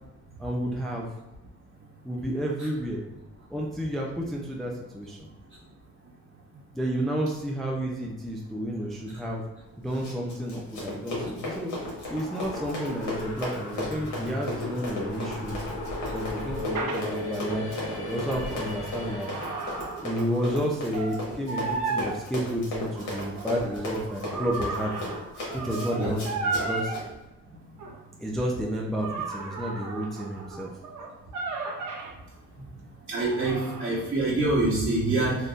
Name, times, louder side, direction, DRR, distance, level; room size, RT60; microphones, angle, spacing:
voice 1, 0.4-1.1 2.0-3.0 3.5-5.2 6.7-9.4 9.8-11.7 12.1-15.6 16.1-19.3 20.0-24.9 25.6-27.0 28.2-30.7, equal, ahead, -2 dB, 0.4 m, -31 dB
Run, 9.9-27.0, left 2 dB, 85° left, 1.4 m, -36 dB
sound 1, 11.7-19.9, left 1 dB, 60° left, 1.2 m, -37 dB
sound 2, 16.7-17.0 18.6-20.6 20.9-21.2 21.5-22.1 22.9-27.0 27.8-28.0 29.0-32.1 33.1-34.0, right 4 dB, 70° right, 0.8 m, -34 dB
voice 2, 33.1-35.4, right 2 dB, 35° right, -7 dB, 0.9 m, -25 dB
3.4 x 2.7 x 2.4 m, 1.1 s
cardioid pair, 90°, 30 cm